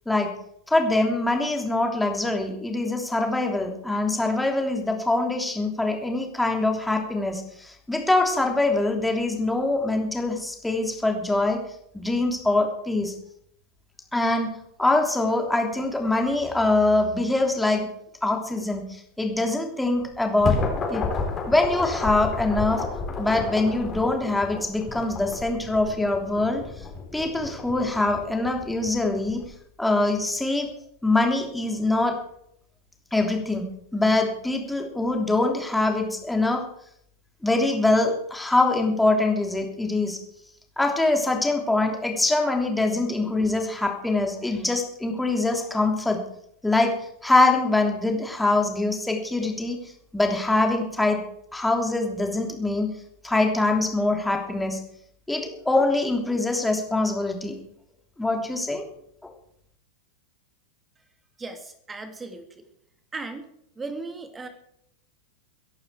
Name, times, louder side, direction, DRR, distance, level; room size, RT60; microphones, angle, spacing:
voice 1, 0.7-11.6 11.9-13.1 14.1-14.5 14.8-17.9 18.2-20.6 20.9-21.1 21.5-22.8 23.2-26.6 27.1-29.4 29.8-30.7 31.0-32.2 33.1-33.7 33.9-36.6 37.4-40.2 40.8-46.2 46.6-47.0 47.2-49.8 50.1-51.2 51.5-52.9 53.2-54.8 55.3-57.6 58.2-58.8 59.2-59.3, left 2 dB, 5° left, 2 dB, 3.1 m, -23 dB
sound 1, 20.0-29.5, left 4 dB, 20° left, 4.2 m, -31 dB
voice 2, 61.4-62.6 63.1-63.5 63.8-64.5, right 3 dB, 15° right, 7 dB, 2.7 m, -36 dB
22.5 x 11.0 x 4.7 m, 0.72 s
figure-of-eight pair, 90°, 0 cm